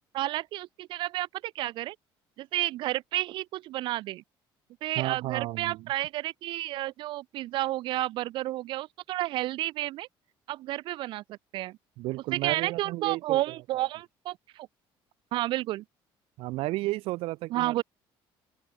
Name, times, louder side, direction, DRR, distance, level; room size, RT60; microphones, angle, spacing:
voice 1, 0.1-2.0 2.4-4.2 4.8-10.1 10.5-11.8 12.3-14.7 15.3-15.8 17.5-17.8, right 16 dB, 60° right, 0.7 m, -31 dB
voice 2, 5.0-5.9 12.0-13.8 16.4-17.8, right 19 dB, 75° right, 3.0 m, -33 dB
open air
cardioid pair, 170°, 9 cm